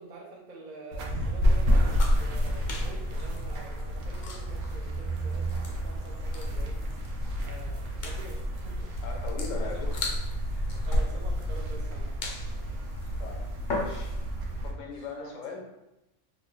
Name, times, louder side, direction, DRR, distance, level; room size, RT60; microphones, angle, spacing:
voice 1, 0.0-6.8 7.4-8.9 9.5-9.9 10.4-12.2 14.8-15.4, right 3 dB, 45° right, -3 dB, 0.8 m, -47 dB
sound 1, 0.9-14.7, equal, 75° right, 1.0 m, -29 dB
sound 2, 1.9-14.4, left 3 dB, 50° left, 0.6 m, -41 dB
voice 2, 9.0-9.9 10.7-10.9 13.2-14.1 14.6-15.6, left 5 dB, 75° left, 1 dB, 1.1 m, -40 dB
3.0 x 2.5 x 3.7 m, 0.92 s
omnidirectional pair, 1.3 m